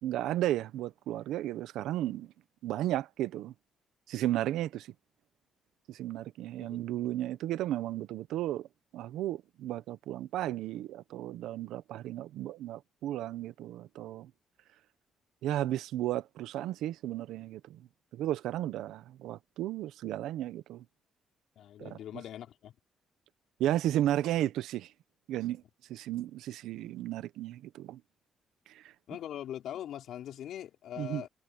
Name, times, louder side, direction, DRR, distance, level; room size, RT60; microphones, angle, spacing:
voice 1, 0.0-2.3 2.6-3.5 4.1-4.9 5.9-8.7 8.9-14.3 15.4-17.8 18.1-20.8 21.8-22.0 23.6-24.9 25.3-25.6 25.9-28.0 28.7-28.9 31.0-31.2, right 13 dB, 85° right, 1.0 m, -34 dB
voice 2, 21.6-22.7 29.1-31.3, left 11 dB, 75° left, 4.3 m, -41 dB
cardioid pair, 90°, 0 cm